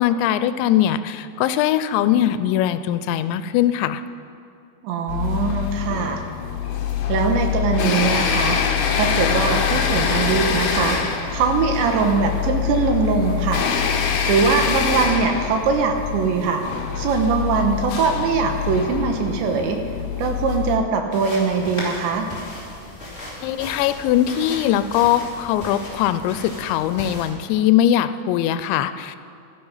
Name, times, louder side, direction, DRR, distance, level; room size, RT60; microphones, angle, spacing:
voice 1, 0.0-4.0 23.4-29.2, left 11 dB, 90° left, 12 dB, 2.9 m, -21 dB
voice 2, 4.8-6.2 7.1-8.6 8.9-13.7 14.3-16.6 17.0-19.8 20.2-22.3, right 5 dB, 90° right, 4 dB, 3.5 m, -21 dB
sound 1, 5.1-20.8, left 8 dB, 70° left, 2.6 m, -24 dB
sound 2, 21.1-27.3, left 1 dB, 15° left, 2.8 m, -36 dB
16.0 x 12.0 x 5.6 m, 2.5 s
omnidirectional pair, 5.1 m